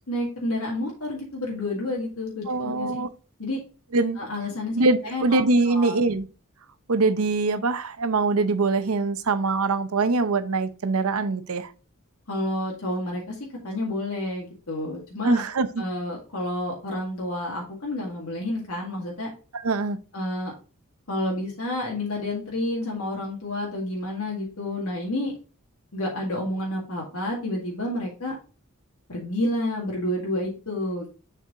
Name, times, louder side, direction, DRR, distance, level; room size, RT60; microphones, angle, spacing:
voice 1, 0.1-3.0 3.4-3.6 4.2-4.8 5.1-6.0 12.3-13.3 13.6-15.4 15.8-19.3 20.1-20.5 21.1-25.3 25.9-28.4 29.1-31.1, left 1 dB, 80° left, 1.9 m, -29 dB
voice 2, 2.5-3.1 3.9-4.2 4.7-6.3 6.9-11.7 15.2-15.8 19.5-20.0, right 3 dB, 80° right, 0.7 m, -23 dB
6.9 x 4.6 x 3.7 m
head